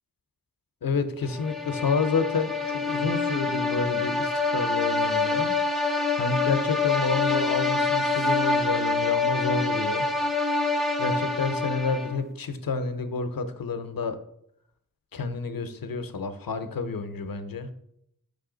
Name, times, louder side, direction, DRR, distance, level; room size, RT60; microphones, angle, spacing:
voice 1, 0.8-5.5 6.1-10.1 11.0-14.2 15.1-17.7, left 4 dB, 80° left, 9 dB, 0.6 m, -29 dB
sound 1, 1.3-12.3, left 3 dB, ahead, 0.5 m, -26 dB
5.5 x 5.2 x 3.8 m, 0.73 s
wide cardioid pair, 65°, 35 cm